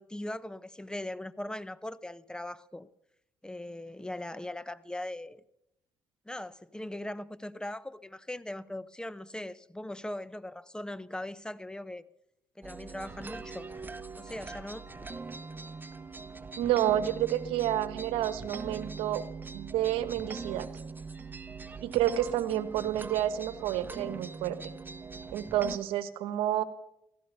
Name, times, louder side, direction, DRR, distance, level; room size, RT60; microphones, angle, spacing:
voice 1, 0.0-2.9 3.4-5.4 6.3-12.0 12.6-13.7 14.2-14.9, left 1 dB, 10° left, 0.8 m, -40 dB
sound 1, 12.6-25.8, right 4 dB, 20° right, 1.2 m, -42 dB
voice 2, 16.6-19.2 19.5-20.7 21.8-24.7 25.3-26.6, right 12 dB, 80° right, 1.1 m, -29 dB
16.0 x 14.0 x 5.5 m
supercardioid pair, 55°, 9 cm